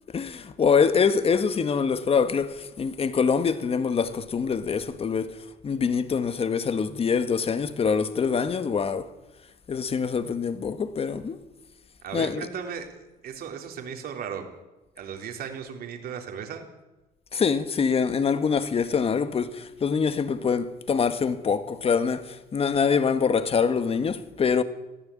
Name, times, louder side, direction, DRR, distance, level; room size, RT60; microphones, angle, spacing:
voice 1, 0.1-9.1 9.7-11.4 12.1-12.5 17.3-24.6, left 6 dB, 35° left, 1.6 m, -25 dB
voice 2, 12.0-12.9 13.2-14.5 15.0-16.7, right 7 dB, 65° right, 4.1 m, -36 dB
21.5 x 14.5 x 8.8 m
cardioid pair, 110°, 17 cm